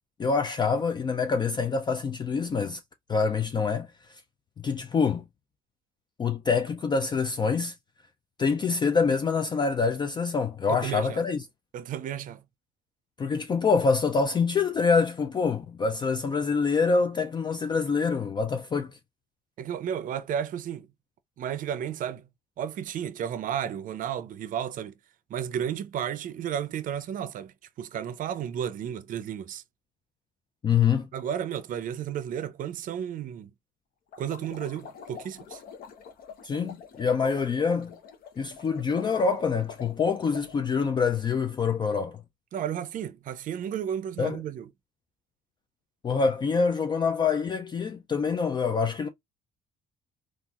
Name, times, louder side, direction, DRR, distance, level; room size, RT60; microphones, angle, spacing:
voice 1, 0.2-2.8 3.1-4.2 4.6-5.2 6.2-7.7 8.4-11.5 13.2-19.0 30.6-31.1 36.4-37.9 38.4-42.2 44.2-44.4 46.0-49.1, left 5 dB, 25° left, 0.3 m, -26 dB
voice 2, 10.7-11.2 11.7-12.4 19.6-20.9 21.4-22.3 22.6-24.9 25.3-29.6 31.1-33.5 34.2-35.6 42.5-44.7, right 9 dB, 55° right, 0.5 m, -33 dB
sound 1, 34.1-40.6, left 7 dB, 60° left, 0.7 m, -46 dB
3.9 x 2.5 x 2.4 m
cardioid pair, 110°, 17 cm